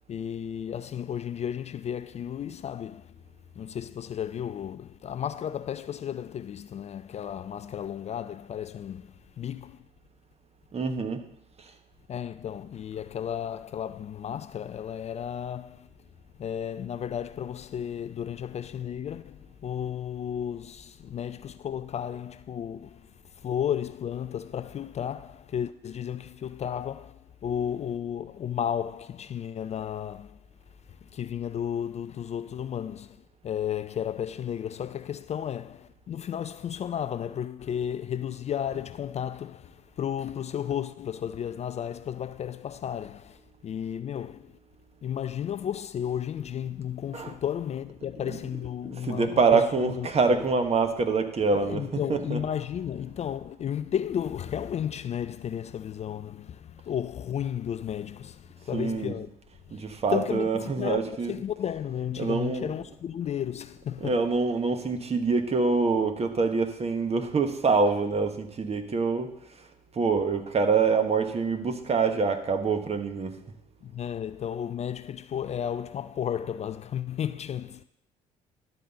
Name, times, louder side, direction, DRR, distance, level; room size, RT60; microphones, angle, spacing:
voice 1, 0.1-3.1 3.6-9.8 12.1-15.9 16.4-23.1 23.4-30.4 31.1-33.2 33.4-44.5 45.0-50.5 51.4-59.3 59.7-59.8 60.1-64.2 73.8-77.8, left 9 dB, 40° left, 0.4 m, -33 dB
voice 2, 10.7-11.2 11.6-11.7 47.1-47.3 48.3-48.4 48.8-52.4 58.7-59.1 59.7-61.4 62.2-62.7 64.0-69.7 69.9-73.4, right 4 dB, 35° right, 1.2 m, -25 dB
11.5 x 4.0 x 6.8 m
hypercardioid pair, 55°, 18 cm